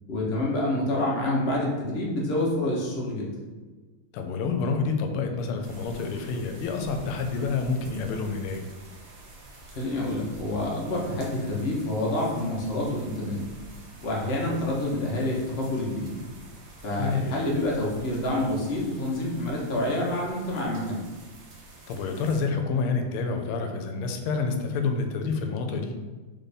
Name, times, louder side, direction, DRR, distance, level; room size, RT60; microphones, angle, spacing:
voice 1, 0.1-3.3 9.7-13.4 14.0-16.2 16.8-21.0, left 1 dB, 55° left, -2 dB, 0.7 m, -27 dB
voice 2, 4.1-8.6 16.9-17.4 21.9-26.0, left 4 dB, 85° left, 5 dB, 1.5 m, -28 dB
sound 1, 5.6-22.4, right 2 dB, 65° right, 1.5 m, -48 dB
3.8 x 3.4 x 4.1 m, 1.3 s
omnidirectional pair, 2.3 m